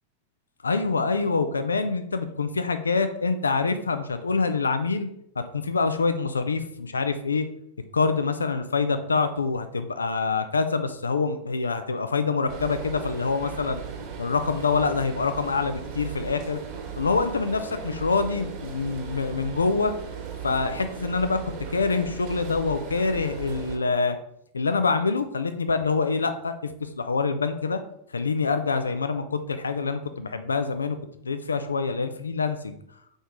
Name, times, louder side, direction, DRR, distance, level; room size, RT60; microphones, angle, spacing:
voice 1, 0.6-5.1 5.5-7.4 7.9-13.8 14.2-16.6 17.0-19.9 20.4-21.4 21.7-24.2 24.5-27.8 28.1-31.0 31.2-32.7, left 4 dB, 75° left, 9 dB, 0.6 m, -25 dB
sound 1, 12.5-23.8, right 7 dB, 45° right, 1.5 m, -37 dB
4.5 x 4.5 x 4.9 m, 0.74 s
figure-of-eight pair, 90°, 0 cm